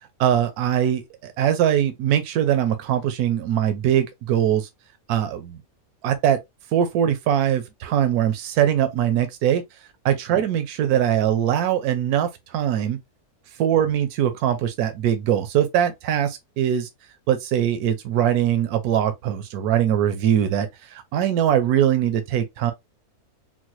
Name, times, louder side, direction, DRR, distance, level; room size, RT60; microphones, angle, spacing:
voice 1, 0.2-4.7 5.1-5.6 6.0-6.4 6.7-9.6 10.0-13.0 13.6-16.9 17.3-22.7, right 10 dB, 85° right, 1.1 m, -22 dB
3.9 x 2.1 x 2.9 m
omnidirectional pair, 1.6 m